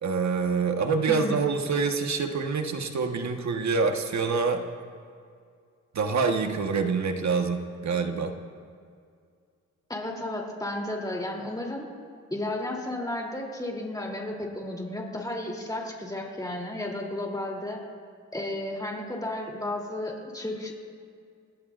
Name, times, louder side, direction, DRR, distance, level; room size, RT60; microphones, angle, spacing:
voice 1, 0.0-4.7 5.9-8.3, right 4 dB, 65° right, 4 dB, 1.4 m, -26 dB
voice 2, 1.1-1.4 9.9-11.9 12.3-17.8 18.3-20.7, left 1 dB, 10° left, -1 dB, 3.2 m, -33 dB
26.0 x 18.5 x 2.6 m, 2.2 s
cardioid pair, 90°, 30 cm